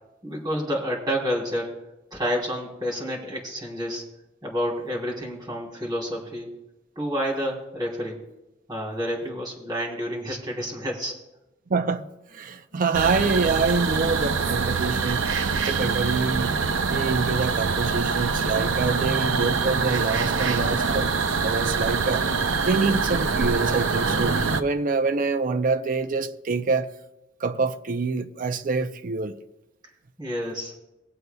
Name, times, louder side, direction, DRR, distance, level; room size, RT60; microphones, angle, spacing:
voice 1, 0.2-1.7 2.1-4.0 4.4-6.5 6.9-8.2 8.7-11.1 12.7-12.9 30.2-30.7, equal, 25° right, 3.1 m, -29 dB
voice 2, 11.7-12.0 12.3-16.6 16.9-21.1 21.4-22.3 22.6-26.9 27.4-29.4, right 4 dB, 45° right, 0.5 m, -26 dB
sound 1, 12.9-24.6, right 4 dB, 85° right, 0.7 m, -24 dB
24.0 x 8.0 x 2.3 m
head